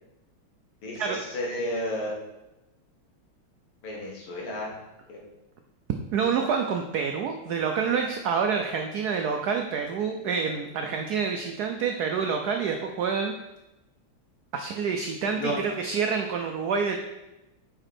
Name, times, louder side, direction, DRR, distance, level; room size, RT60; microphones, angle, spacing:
voice 1, 0.8-2.1 3.8-4.7 5.1-5.2 15.3-15.6, equal, 85° left, -3 dB, 2.7 m, -32 dB
voice 2, 6.1-13.3 14.5-17.0, right 6 dB, 80° right, 4 dB, 0.8 m, -27 dB
7.8 x 5.3 x 4.3 m, 0.98 s
omnidirectional pair, 2.3 m